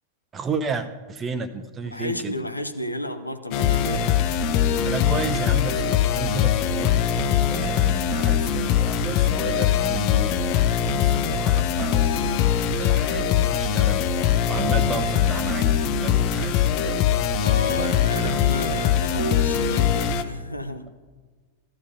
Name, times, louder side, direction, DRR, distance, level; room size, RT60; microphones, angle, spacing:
voice 1, 0.3-2.4 4.8-12.5 12.8-17.4 17.7-18.5, right 4 dB, 25° right, 9 dB, 0.8 m, -33 dB
voice 2, 1.9-4.1 17.4-20.9, equal, 85° left, 9 dB, 0.7 m, -32 dB
sound 1, 3.5-20.2, left 9 dB, 45° left, 0.6 m, -22 dB
15.5 x 12.5 x 2.7 m, 1.4 s
figure-of-eight pair, 90°, 0 cm